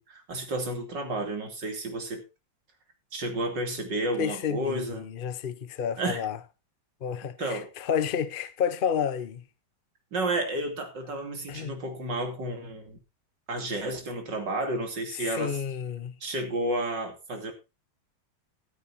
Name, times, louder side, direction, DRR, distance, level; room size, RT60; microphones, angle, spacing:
voice 1, 0.0-2.2 3.1-5.1 6.0-6.2 7.4-7.7 10.1-13.0 13.5-15.6 16.2-17.5, right 1 dB, 55° right, 3.5 m, -31 dB
voice 2, 4.2-6.4 7.0-9.4 11.5-11.7 15.2-16.1, left 8 dB, 65° left, 0.5 m, -30 dB
14.0 x 13.0 x 2.8 m
omnidirectional pair, 2.3 m